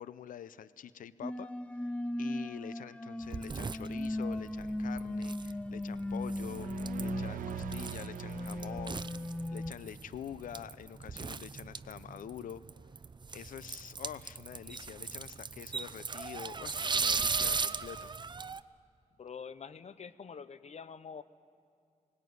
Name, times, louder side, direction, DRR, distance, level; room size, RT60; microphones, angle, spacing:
voice 1, 0.0-1.5 2.2-6.7 7.0-9.1 9.5-12.6 13.3-18.1, left 9 dB, 85° left, 16 dB, 0.6 m, -46 dB
sound 1, 1.2-9.7, left 1 dB, 10° left, 0.6 m, -37 dB
sound 2, 3.2-18.6, right 4 dB, 35° right, 0.6 m, -38 dB
sound 3, 6.0-9.9, right 12 dB, 85° right, 0.4 m, -44 dB
voice 2, 19.2-21.2, left 6 dB, 55° left, 14 dB, 0.9 m, -46 dB
18.5 x 18.5 x 9.4 m, 2.3 s
cardioid pair, 65°, 14 cm